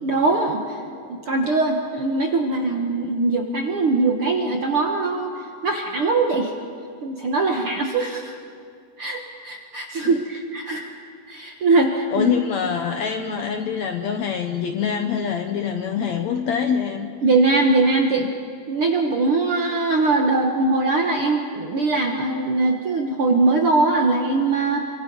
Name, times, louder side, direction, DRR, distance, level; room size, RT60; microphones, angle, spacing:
voice 1, 0.0-0.8 1.3-5.3 5.6-6.5 7.0-8.3 9.0-11.0 11.3-12.3 17.2-18.3 18.7-24.9, right 3 dB, 60° right, 2 dB, 1.5 m, -21 dB
voice 2, 12.1-17.1, left 7 dB, 70° left, 6 dB, 1.7 m, -25 dB
28.5 x 24.5 x 5.4 m, 2.3 s
omnidirectional pair, 4.2 m